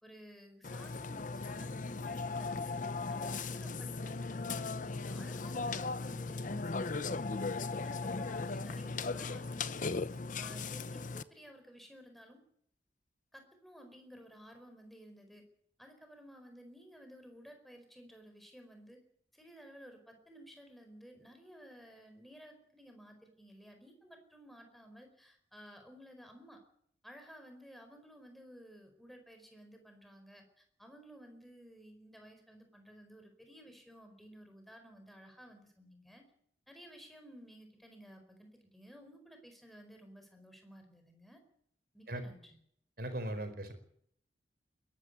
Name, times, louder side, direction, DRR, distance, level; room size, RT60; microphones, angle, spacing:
voice 1, 0.0-2.8 3.1-7.4 7.8-10.0 10.4-12.4 13.3-15.5 15.8-19.0 19.3-26.6 27.0-36.2 36.7-41.4 41.9-42.6, equal, ahead, 5 dB, 4.8 m, -55 dB
Burping eructation, 0.6-11.2, left 3 dB, 45° left, 0.8 m, -37 dB
voice 2, 43.0-43.7, right 1 dB, 55° right, 7 dB, 4.7 m, -38 dB
22.0 x 12.5 x 9.7 m, 0.65 s
head